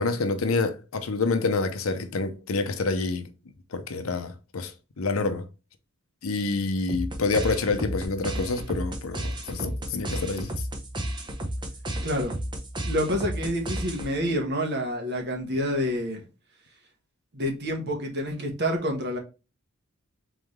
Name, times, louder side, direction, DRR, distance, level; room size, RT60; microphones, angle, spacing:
voice 1, 0.0-3.3 3.7-5.5 6.2-10.5, left 3 dB, 75° left, 0.7 m, -27 dB
sound 1, 6.9-14.3, right 1 dB, 20° right, 0.7 m, -33 dB
voice 2, 12.0-12.3 12.8-16.2 17.3-19.2, equal, 50° right, 1.3 m, -28 dB
4.0 x 3.6 x 3.1 m
head